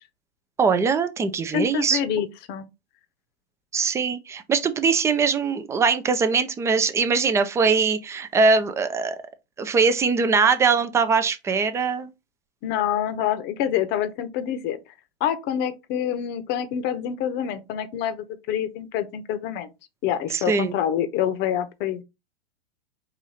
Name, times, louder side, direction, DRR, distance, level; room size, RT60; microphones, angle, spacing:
voice 1, 0.6-2.0 3.7-9.2 9.6-12.1 20.3-20.7, right 5 dB, 10° right, 0.3 m, -22 dB
voice 2, 1.5-2.7 12.6-14.8 15.2-19.7 20.0-22.0, left 9 dB, 35° left, 0.8 m, -26 dB
4.9 x 2.6 x 4.0 m
hypercardioid pair, 110°, 32 cm